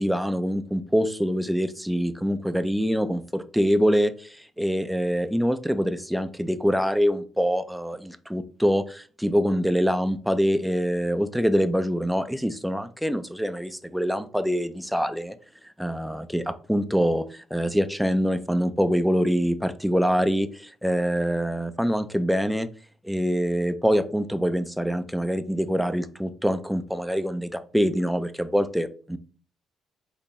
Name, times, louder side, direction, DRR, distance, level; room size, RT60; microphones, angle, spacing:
voice 1, 0.0-15.4 15.8-22.7 23.0-29.2, equal, ahead, 10 dB, 0.4 m, -25 dB
4.2 x 2.9 x 4.1 m, 0.41 s
cardioid pair, 90°, 0 cm